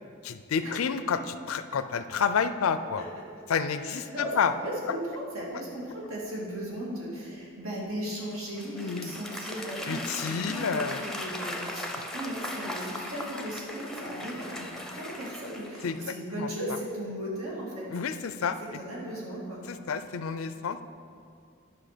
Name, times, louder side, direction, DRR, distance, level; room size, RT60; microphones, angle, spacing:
voice 1, 0.2-3.0 3.5-4.5 8.7-9.1 9.9-11.0 15.8-16.0 16.3-16.5 17.9-18.8 19.7-20.8, left 6 dB, 80° left, 11 dB, 0.5 m, -29 dB
voice 2, 3.8-17.9 18.7-19.6, equal, 85° right, -4 dB, 2.4 m, -37 dB
Applause / Crowd, 8.3-16.1, left 1 dB, ahead, 0.6 m, -38 dB
10.0 x 5.8 x 5.1 m, 2.4 s
head